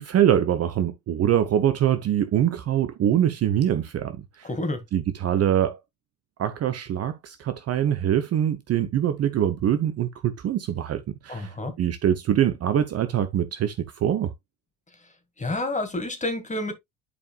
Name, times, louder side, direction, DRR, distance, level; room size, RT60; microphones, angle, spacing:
voice 1, 0.0-4.5 4.9-5.8 6.4-14.3, right 10 dB, 35° right, 0.8 m, -24 dB
voice 2, 4.4-4.8 11.3-11.7 15.4-16.7, left 2 dB, 15° left, 2.1 m, -29 dB
11.0 x 4.6 x 2.4 m
figure-of-eight pair, 60°, 45 cm